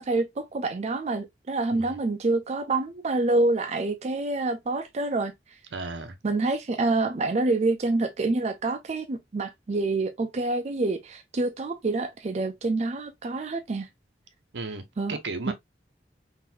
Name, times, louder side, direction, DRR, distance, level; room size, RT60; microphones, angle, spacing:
voice 1, 0.0-5.3 6.2-13.9 15.0-15.1 15.5-15.6, right 2 dB, 40° right, 0.4 m, -27 dB
voice 2, 5.7-6.2 14.5-14.8 15.1-15.5, right 3 dB, 80° right, 0.7 m, -34 dB
3.8 x 2.6 x 2.7 m
head